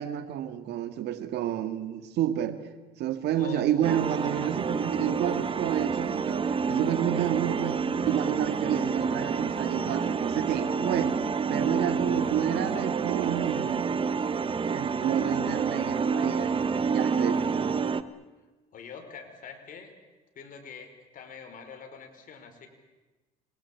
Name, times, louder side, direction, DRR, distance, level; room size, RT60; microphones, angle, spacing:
voice 1, 0.0-2.6 3.0-11.2 11.4-13.9 14.7-17.5, right 11 dB, 75° right, 9 dB, 2.1 m, -30 dB
voice 2, 3.3-3.7 15.1-15.4 17.2-17.6 18.7-19.9 20.3-22.7, left 6 dB, 55° left, 5 dB, 4.7 m, -45 dB
sound 1, 3.8-18.0, right 5 dB, 30° right, 1.1 m, -28 dB
27.5 x 20.0 x 8.5 m, 1.2 s
cardioid pair, 110°, 17 cm